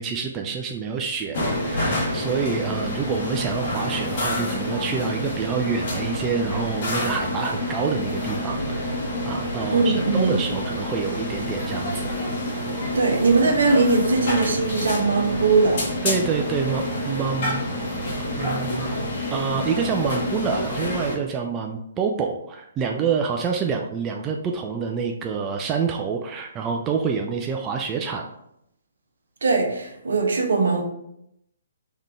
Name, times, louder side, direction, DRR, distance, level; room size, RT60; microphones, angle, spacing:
voice 1, 0.0-12.2 16.0-17.6 18.4-19.0 19.3-28.3, right 6 dB, 20° right, 2 dB, 0.4 m, -27 dB
sound 1, 1.3-21.2, left 1 dB, 50° left, 1.6 m, -28 dB
voice 2, 9.7-10.4 12.9-15.9 29.4-30.8, right 3 dB, 70° right, 1 dB, 1.0 m, -20 dB
3.6 x 3.6 x 3.4 m, 0.78 s
figure-of-eight pair, 135°, 0 cm